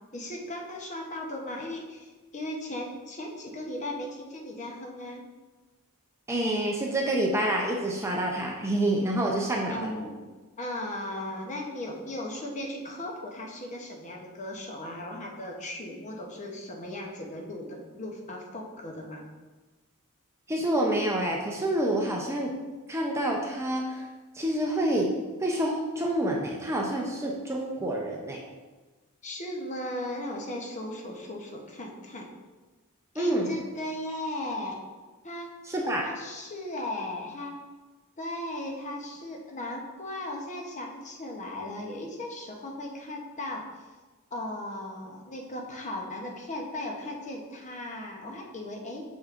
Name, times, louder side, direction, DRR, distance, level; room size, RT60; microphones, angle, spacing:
voice 1, 0.1-5.2 9.7-10.2 10.6-19.2 29.2-32.3 33.1-34.8 35.2-35.5 36.0-37.6 38.2-43.8 44.3-49.0, left 1 dB, 35° left, 0 dB, 0.8 m, -37 dB
voice 2, 6.3-9.9 20.5-22.5 22.9-24.0 24.3-25.1 25.4-28.4 33.2-33.5 35.7-36.1, right 1 dB, 15° right, -1 dB, 0.6 m, -27 dB
6.2 x 6.2 x 2.5 m, 1.3 s
head